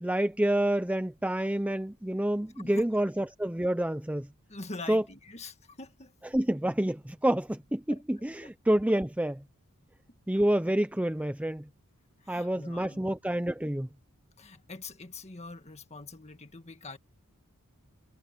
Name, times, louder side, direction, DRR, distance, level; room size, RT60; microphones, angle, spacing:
voice 1, 0.0-4.3 4.9-5.0 6.3-9.4 10.3-11.7 12.3-13.9, right 1 dB, 5° right, 0.6 m, -28 dB
voice 2, 2.6-2.9 4.5-6.1 12.2-13.1 14.4-17.0, left 3 dB, 30° left, 1.8 m, -44 dB
head